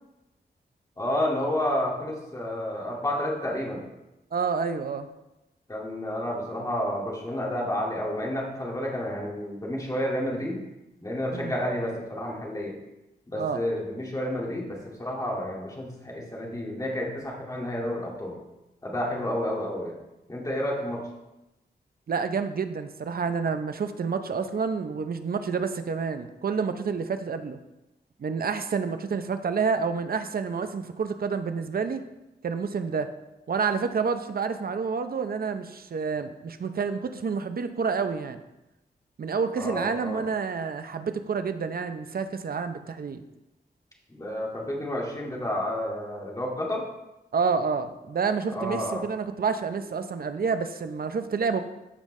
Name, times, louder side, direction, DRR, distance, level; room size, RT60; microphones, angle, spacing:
voice 1, 1.0-3.8 5.7-10.6 11.0-12.8 13.3-18.4 18.8-20.0 20.3-21.1 39.6-40.2 44.1-46.8 48.5-49.1, left 1 dB, 20° left, -3 dB, 2.0 m, -30 dB
voice 2, 4.3-5.1 11.3-11.5 13.4-13.6 22.1-27.6 28.2-32.0 32.4-33.1 33.5-38.4 39.2-43.2 47.3-51.6, right 5 dB, 55° right, 9 dB, 0.6 m, -29 dB
13.5 x 5.1 x 3.2 m, 0.96 s
wide cardioid pair, 110°, 18 cm